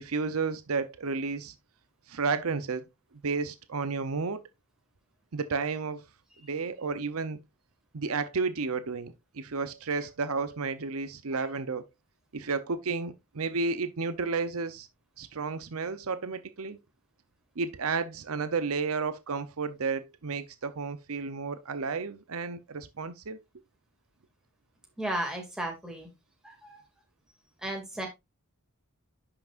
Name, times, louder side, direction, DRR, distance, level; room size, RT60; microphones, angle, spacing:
voice 1, 0.0-1.5 2.1-2.8 3.2-4.4 5.3-6.0 6.4-7.4 7.9-11.8 12.3-14.9 15.2-16.8 17.6-23.4, right 4 dB, 75° right, 0.7 m, -32 dB
voice 2, 25.0-26.1 26.4-26.8 27.6-28.1, right 1 dB, 5° right, 2.3 m, -35 dB
10.5 x 5.9 x 2.5 m
head